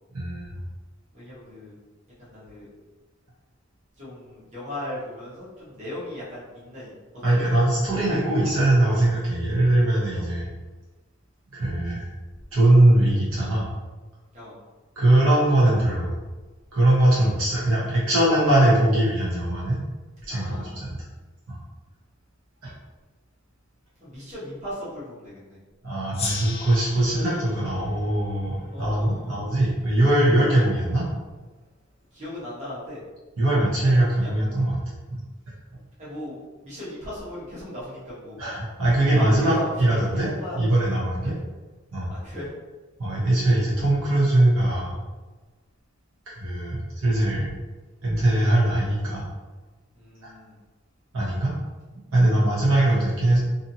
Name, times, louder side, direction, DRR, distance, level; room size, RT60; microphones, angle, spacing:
voice 1, 0.1-0.6 7.2-10.5 11.5-12.1 12.5-13.6 15.0-16.1 16.7-19.8 20.3-21.0 21.5-21.6 22.6-22.7 25.8-31.0 33.4-34.8 35.1-35.2 38.4-40.3 40.5-41.3 41.9-42.1 43.0-45.0 46.4-47.5 48.0-49.2 50.2-50.3 51.1-51.5 52.1-53.4, right 1 dB, 70° right, -7 dB, 1.0 m, -21 dB
voice 2, 1.1-1.7 2.2-2.7 4.0-6.9 7.3-7.5 8.1-8.5 10.1-10.3 14.3-14.5 20.3-20.9 24.0-25.6 28.7-29.4 32.1-33.0 33.8-34.3 36.0-38.4 39.1-40.6 41.2-41.4 42.1-42.5 49.9-50.6, left 1 dB, 30° right, -9 dB, 1.1 m, -37 dB
Gong, 26.1-29.3, left 4 dB, 25° left, 0.3 m, -37 dB
2.7 x 2.6 x 2.7 m, 1.2 s
head